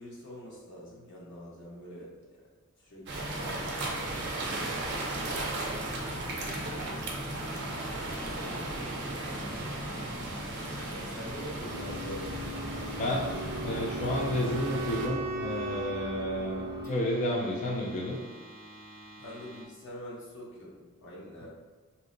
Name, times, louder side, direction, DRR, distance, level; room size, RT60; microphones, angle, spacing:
voice 1, 0.0-2.4 2.8-4.8 5.5-9.9 10.8-13.5 19.2-21.5, equal, 55° left, -5 dB, 0.9 m, -46 dB
sound 1, 3.1-19.6, left 2 dB, 75° left, 1.4 m, -44 dB
sound 2, 3.1-15.1, right 2 dB, 50° right, 0.6 m, -36 dB
Wind instrument woodwind instrument, 13.3-17.4, right 4 dB, 90° right, 0.3 m, -38 dB
voice 2, 13.6-18.2 21.4-21.5, left 1 dB, 35° left, -2 dB, 0.4 m, -31 dB
2.8 x 2.1 x 3.8 m, 1.4 s
head